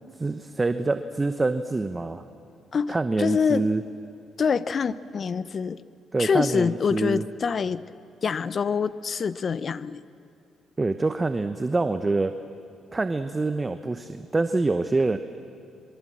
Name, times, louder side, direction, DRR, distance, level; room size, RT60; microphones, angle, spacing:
voice 1, 0.2-2.2 2.9-3.8 6.1-7.2 10.8-12.3 12.9-15.2, right 3 dB, 20° right, 9 dB, 0.9 m, -25 dB
voice 2, 2.7-3.7 4.4-5.8 6.2-7.8 8.2-10.0, left 6 dB, 45° left, 16 dB, 0.8 m, -25 dB
27.0 x 23.5 x 7.6 m, 2.4 s
cardioid pair, 90°, 0 cm